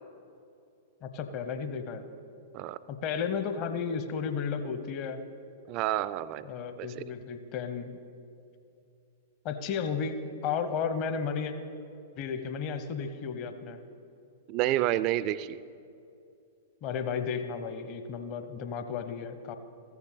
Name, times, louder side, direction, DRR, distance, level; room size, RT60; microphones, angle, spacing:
voice 1, 1.0-2.0 2.9-5.2 6.4-8.0 9.4-11.5 12.2-13.8 16.8-19.6, left 6 dB, 40° left, 9 dB, 0.9 m, -33 dB
voice 2, 5.7-7.0 14.5-15.6, right 14 dB, 40° right, 17 dB, 0.4 m, -30 dB
14.5 x 7.0 x 6.6 m, 2.6 s
figure-of-eight pair, 100°, 0 cm